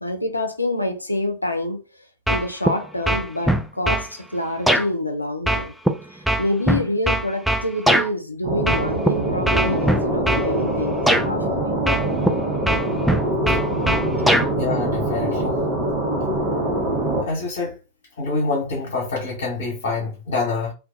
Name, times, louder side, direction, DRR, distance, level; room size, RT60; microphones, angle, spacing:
voice 1, 0.0-1.8 2.3-5.7 6.4-11.7 15.3-15.6, left 1 dB, 85° left, 0.4 m, -27 dB
sound 1, 2.3-2.8 3.1-4.1 4.7-4.9 5.5-8.1 8.7-9.1 9.5-10.5 11.1-11.3 11.9-12.4 12.7-14.5, right 1 dB, ahead, 0.3 m, -20 dB
sound 2, 8.4-17.2, right 1 dB, 45° right, 0.8 m, -24 dB
voice 2, 14.5-15.5 17.2-17.8 18.2-20.7, left 3 dB, 60° left, 0.9 m, -26 dB
2.2 x 2.2 x 2.6 m
figure-of-eight pair, 90°, 0 cm